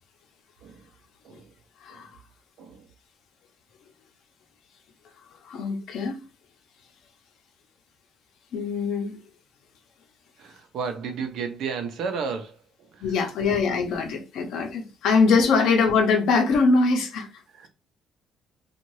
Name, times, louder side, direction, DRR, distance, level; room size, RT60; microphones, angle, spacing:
voice 1, 1.2-1.6 1.9-2.1 2.6-2.9 10.4-13.5 14.8-14.9 17.5-17.7, right 5 dB, 70° right, 0.7 m, -34 dB
voice 2, 5.4-6.2 8.5-9.2 13.0-17.3, left 4 dB, 70° left, 0.8 m, -22 dB
2.7 x 2.4 x 3.1 m
cardioid pair, 105°, 0 cm